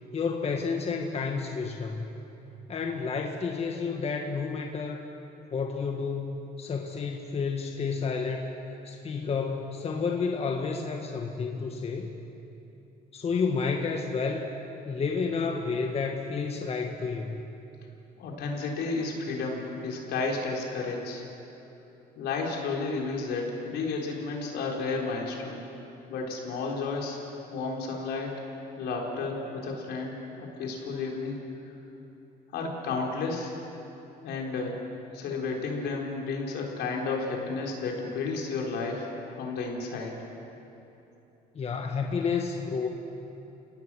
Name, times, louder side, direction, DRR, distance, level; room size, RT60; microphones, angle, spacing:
voice 1, 0.1-2.1 2.7-5.0 5.5-8.5 8.8-12.1 13.1-14.5 14.8-17.4 41.5-42.9, left 5 dB, 35° left, 3 dB, 1.6 m, -30 dB
voice 2, 18.2-21.2 22.2-25.6 26.1-27.2 27.5-28.3 28.8-31.4 31.7-31.8 32.5-33.5 34.2-34.7 35.1-39.1 39.4-40.1, left 4 dB, 75° left, 0 dB, 4.1 m, -32 dB
29.5 x 17.5 x 6.3 m, 3.0 s
cardioid pair, 110°, 17 cm